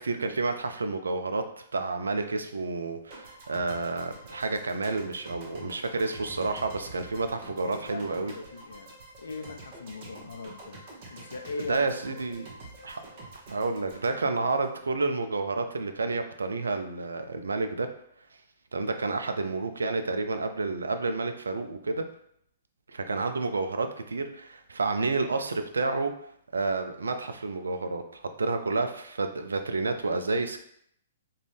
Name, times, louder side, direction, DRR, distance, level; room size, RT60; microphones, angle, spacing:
voice 1, 0.0-1.4 1.7-8.3 11.7-12.5 12.8-13.0 13.5-17.9 18.7-22.0 22.9-26.1 26.5-30.6, right 3 dB, 80° right, 7 dB, 0.3 m, -30 dB
sound 1, 3.1-15.3, right 1 dB, 45° right, 0.9 m, -47 dB
voice 2, 7.4-10.8 11.1-11.9, left 4 dB, 75° left, 6 dB, 0.3 m, -40 dB
2.5 x 2.2 x 3.3 m, 0.70 s
hypercardioid pair, 120°, 0 cm